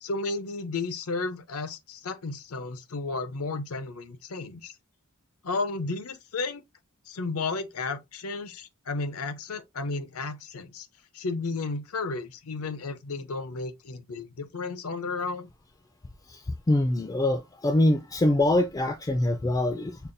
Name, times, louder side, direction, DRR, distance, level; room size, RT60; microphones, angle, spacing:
voice 1, 0.0-4.7 5.4-6.6 7.1-10.9 11.1-15.5, left 3 dB, 85° left, 0.7 m, -33 dB
voice 2, 16.7-20.0, left 1 dB, 15° left, 0.3 m, -24 dB
5.4 x 2.3 x 2.5 m
head